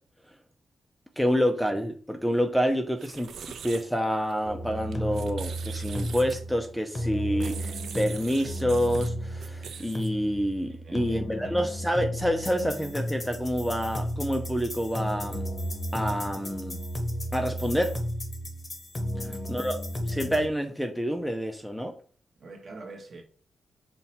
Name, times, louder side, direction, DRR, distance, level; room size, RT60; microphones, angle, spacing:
voice 1, 1.2-3.3 3.6-15.4 15.9-16.8 17.3-17.9 19.5-19.8 20.1-21.9, equal, ahead, 0.4 m, -28 dB
sound 1, 2.9-10.3, right 7 dB, 75° right, 0.4 m, -44 dB
sound 2, 4.5-20.5, equal, 25° left, 0.7 m, -33 dB
voice 2, 10.7-11.6 19.1-19.7 22.4-23.2, right 2 dB, 45° right, 1.0 m, -46 dB
5.6 x 2.2 x 4.0 m
wide cardioid pair, 155°, 0 cm